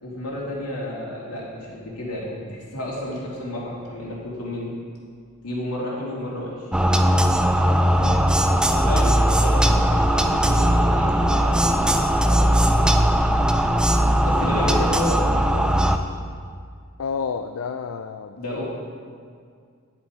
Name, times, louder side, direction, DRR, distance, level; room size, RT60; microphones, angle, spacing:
voice 1, 0.0-4.7 5.4-6.7 8.7-10.1 10.3-12.9 14.2-15.9 18.4-18.6, left 1 dB, 90° left, -5 dB, 2.8 m, -31 dB
sound 1, 6.7-16.0, equal, 5° right, 0.3 m, -19 dB
voice 2, 17.0-18.6, left 5 dB, 70° left, 8 dB, 0.4 m, -31 dB
10.0 x 8.3 x 4.8 m, 2.1 s
head